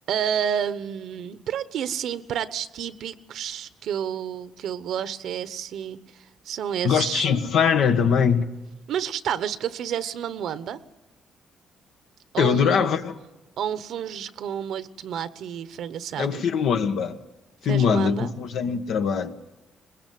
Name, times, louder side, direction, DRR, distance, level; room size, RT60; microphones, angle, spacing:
voice 1, 0.1-7.2 8.9-10.8 12.3-13.0 13.6-16.4 17.7-18.3, right 9 dB, 75° right, 1.1 m, -30 dB
voice 2, 6.8-8.5 12.4-13.2 16.2-17.2 17.6-19.3, left 7 dB, 75° left, 1.6 m, -22 dB
22.0 x 21.0 x 9.4 m
cardioid pair, 90°, 0 cm